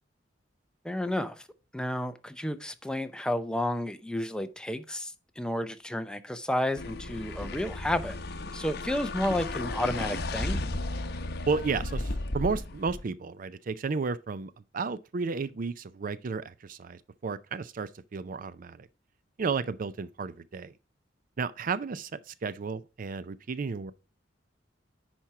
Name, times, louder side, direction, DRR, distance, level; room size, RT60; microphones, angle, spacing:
voice 1, 0.8-1.4 1.7-8.2 8.5-10.6, left 1 dB, 5° left, 0.6 m, -31 dB
sound 1, 6.7-13.0, left 2 dB, 60° left, 0.9 m, -34 dB
voice 2, 11.5-18.9 19.4-20.7 21.4-23.9, right 4 dB, 45° right, 0.4 m, -33 dB
10.0 x 4.4 x 4.7 m
head